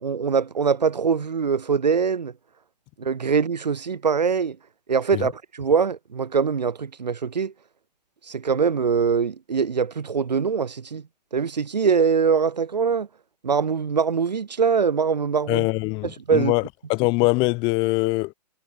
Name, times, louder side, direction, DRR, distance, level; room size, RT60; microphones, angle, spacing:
voice 1, 0.0-2.3 3.0-4.6 4.9-7.5 8.3-11.0 11.3-13.1 13.4-15.7 16.0-16.5, right 6 dB, 90° right, 0.5 m, -23 dB
voice 2, 15.5-16.6 16.9-18.3, left 28 dB, 25° left, 0.7 m, -22 dB
figure-of-eight pair, 125°, 21 cm